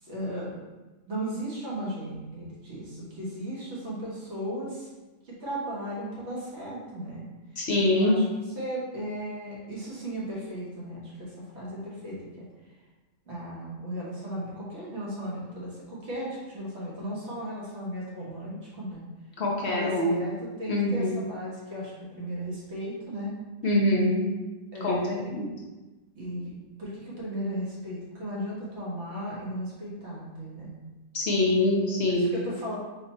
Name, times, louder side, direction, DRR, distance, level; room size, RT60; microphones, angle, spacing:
voice 1, 0.0-0.5 1.0-4.9 5.2-7.3 7.9-8.2 8.5-12.4 13.3-19.1 19.6-21.9 22.2-23.3 24.7-25.4 26.1-26.5 26.8-30.8 32.1-32.8, equal, 55° right, -6 dB, 1.6 m, -36 dB
voice 2, 7.6-8.2 19.4-20.2 20.7-21.2 23.6-24.3 24.8-25.5 31.1-32.3, left 1 dB, 60° left, -2 dB, 0.9 m, -24 dB
4.0 x 2.8 x 4.2 m, 1.2 s
omnidirectional pair, 1.4 m